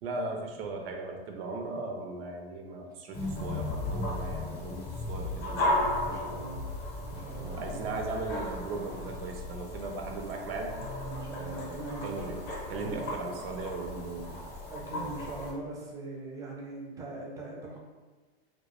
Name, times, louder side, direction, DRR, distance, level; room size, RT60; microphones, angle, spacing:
voice 1, 0.0-6.4 7.1-10.8 11.3-12.4 12.7-14.4 14.9-15.1, right 3 dB, 70° right, 2 dB, 0.5 m, -38 dB
sound 1, 3.1-15.5, left 1 dB, 30° left, 0.6 m, -35 dB
voice 2, 6.0-6.7 7.0-7.9 11.0-12.3 12.7-13.3 14.6-17.8, right 2 dB, 10° right, -2 dB, 0.3 m, -41 dB
2.2 x 2.1 x 2.9 m, 1.3 s
supercardioid pair, 125°, 32 cm